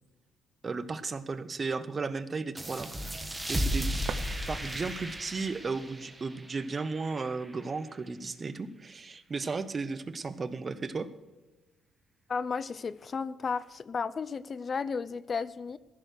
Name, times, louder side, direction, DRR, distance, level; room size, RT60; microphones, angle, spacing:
voice 1, 0.6-3.2 3.5-4.0 4.5-11.1, right 4 dB, 35° right, 13 dB, 0.8 m, -35 dB
sound 1, 2.6-7.8, equal, 10° right, 1.5 m, -35 dB
sound 2, 4.0-5.0, right 8 dB, 65° right, 0.6 m, -43 dB
voice 2, 12.3-15.8, left 5 dB, 40° left, 17 dB, 0.4 m, -33 dB
14.5 x 6.7 x 6.5 m, 1.1 s
cardioid pair, 90°, 0 cm